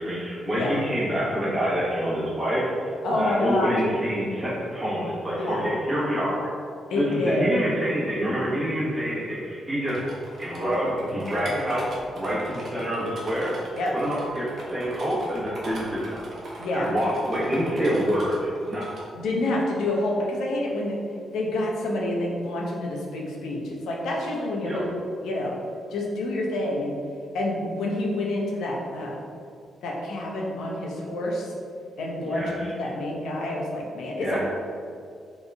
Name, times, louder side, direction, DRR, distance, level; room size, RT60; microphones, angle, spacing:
voice 1, 0.0-6.5 6.9-10.0 10.4-11.8 12.1-13.5 13.9-16.2 16.7-18.8 24.6-24.8 32.2-32.7 34.2-34.4, equal, 10° right, -8 dB, 1.4 m, -27 dB
voice 2, 0.5-0.9 3.0-3.8 5.4-5.7 6.9-7.5 13.7-13.9 16.6-16.9 19.1-21.0 21.3-24.9 25.2-25.6 25.9-27.0 27.3-29.2 29.8-31.5 32.0-34.4, left 1 dB, 85° left, -2 dB, 0.9 m, -28 dB
sound 1, 9.9-19.0 19.5-19.6, right 1 dB, 45° right, 1.0 m, -41 dB
4.1 x 3.7 x 3.5 m, 2.3 s
wide cardioid pair, 170°, 0 cm